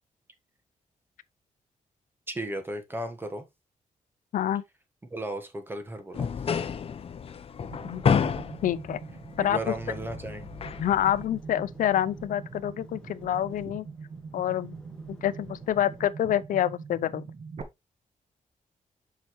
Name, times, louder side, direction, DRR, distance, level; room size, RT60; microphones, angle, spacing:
voice 1, 2.3-3.4 5.1-6.3 9.4-10.5, right 1 dB, 15° right, 1.4 m, -35 dB
voice 2, 4.3-4.6 7.8-8.0 8.6-9.0 9.4-9.7 10.8-13.9 14.3-14.8 15.1-17.2, left 11 dB, 85° left, 0.6 m, -27 dB
sound 1, 6.1-11.3, left 6 dB, 45° left, 0.7 m, -30 dB
sound 2, 7.3-16.1, left 2 dB, 5° left, 1.6 m, -55 dB
sound 3, 7.6-17.6, right 5 dB, 50° right, 1.2 m, -43 dB
7.5 x 5.7 x 3.0 m
wide cardioid pair, 135°, 13 cm